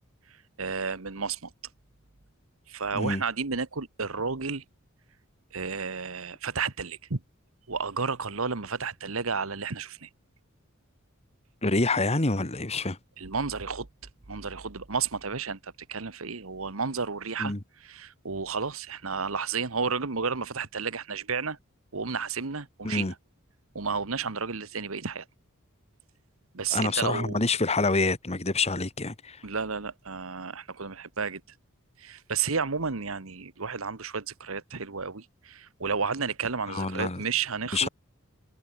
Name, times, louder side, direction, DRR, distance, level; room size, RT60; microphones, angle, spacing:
voice 1, 0.6-1.5 2.7-4.6 5.5-7.2 7.7-10.1 13.2-13.9 14.3-17.5 17.8-21.6 21.9-23.1 23.7-25.2 26.5-27.4 29.4-31.4 32.0-37.9, right 5 dB, 70° right, 1.4 m, -32 dB
voice 2, 11.6-13.0 17.4-17.6 22.8-23.1 26.7-29.4 36.7-37.2 37.7-37.9, left 3 dB, 30° left, 1.9 m, -27 dB
head